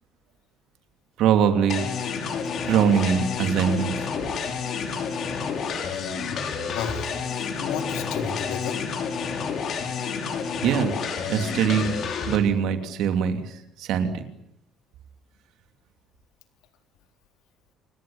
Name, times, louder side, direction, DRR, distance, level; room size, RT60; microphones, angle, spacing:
voice 1, 1.2-1.9 2.7-3.9 10.6-10.9 11.3-14.2, right 8 dB, 70° right, 8 dB, 3.0 m, -22 dB
sound 1, 1.7-12.4, left 6 dB, 50° left, 4.7 m, -30 dB
voice 2, 6.7-8.8, left 7 dB, 90° left, 7 dB, 3.9 m, -33 dB
28.0 x 19.5 x 8.9 m, 0.78 s
cardioid pair, 145°, 0 cm